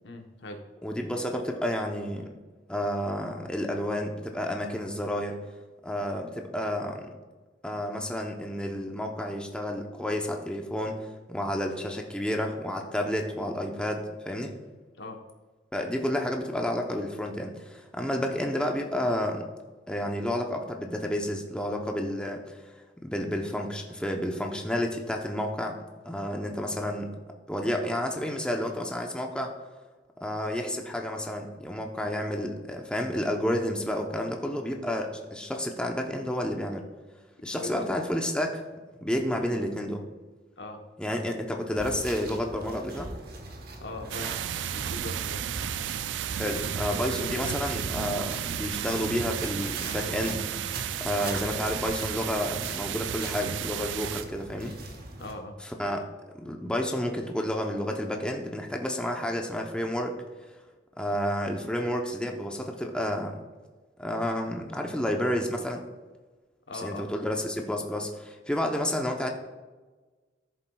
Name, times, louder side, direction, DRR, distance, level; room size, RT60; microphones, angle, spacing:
voice 1, 0.0-0.6 15.0-15.2 37.6-37.9 39.1-39.3 40.6-40.8 43.8-44.3 44.7-45.4 55.2-55.6 66.7-67.1, left 2 dB, 70° left, 4 dB, 1.0 m, -40 dB
voice 2, 0.8-2.3 2.7-5.4 5.8-7.1 7.6-14.5 15.7-19.4 19.9-22.6 23.0-25.8 26.0-27.1 27.5-29.5 30.2-36.8 37.4-38.6 39.0-40.0 41.0-43.1 46.3-50.7 51.0-54.7 55.6-56.0 56.3-60.2 61.0-63.4 64.0-65.8 66.8-69.3, equal, 5° left, 2 dB, 0.7 m, -30 dB
sound 1, 41.7-55.3, right 2 dB, 55° right, 1.1 m, -40 dB
sound 2, 44.1-54.2, right 10 dB, 80° right, 0.3 m, -33 dB
13.5 x 7.4 x 2.3 m, 1.3 s
head